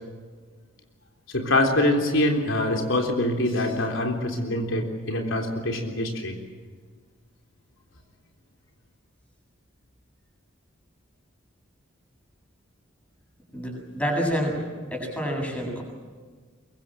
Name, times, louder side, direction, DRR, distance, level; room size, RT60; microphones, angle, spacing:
voice 1, 1.3-6.4, left 1 dB, 70° left, 2 dB, 3.7 m, -24 dB
voice 2, 13.5-14.6 14.9-15.8, equal, 5° left, 1 dB, 7.8 m, -28 dB
24.0 x 23.0 x 7.7 m, 1.5 s
head